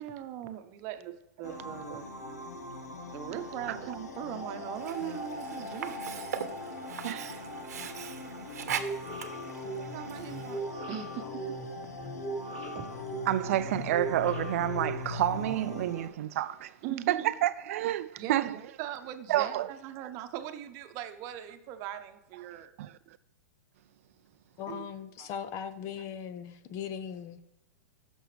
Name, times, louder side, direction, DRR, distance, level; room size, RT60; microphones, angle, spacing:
voice 1, 0.0-2.0 3.1-6.4 9.9-12.0 16.8-17.3 18.2-22.7 24.7-24.9 25.2-25.3, right 11 dB, 40° right, 0.9 m, -40 dB
sound 1, 1.4-16.1, left 2 dB, 85° left, 1.1 m, -41 dB
Sink (filling or washing), 4.7-10.7, right 8 dB, 80° right, 0.9 m, -40 dB
voice 2, 7.0-7.4 12.8-12.9 13.3-16.8 17.1-18.6 19.3-19.7 22.8-23.0, right 13 dB, 60° right, 0.4 m, -29 dB
sound 2, 8.7-15.6, right 2 dB, 15° left, 2.3 m, -40 dB
voice 3, 24.6-27.4, left 8 dB, 35° left, 0.7 m, -39 dB
14.5 x 6.2 x 3.3 m
hypercardioid pair, 125°, 9 cm